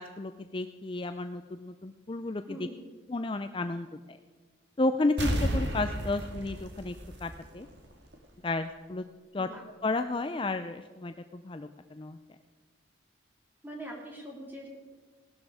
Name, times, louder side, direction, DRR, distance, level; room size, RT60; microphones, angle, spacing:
voice 1, 0.0-2.4 3.1-4.2 4.8-6.9 7.2-7.7 8.4-9.0 9.3-9.5 9.8-12.2, left 2 dB, 25° left, 9 dB, 0.4 m, -32 dB
voice 2, 2.5-2.9 9.4-9.6 13.6-14.7, equal, 10° right, -2 dB, 3.2 m, -42 dB
sound 1, 5.2-7.8 8.1-8.2, right 1 dB, 60° right, 2.3 m, -32 dB
18.5 x 12.5 x 4.9 m, 1.4 s
head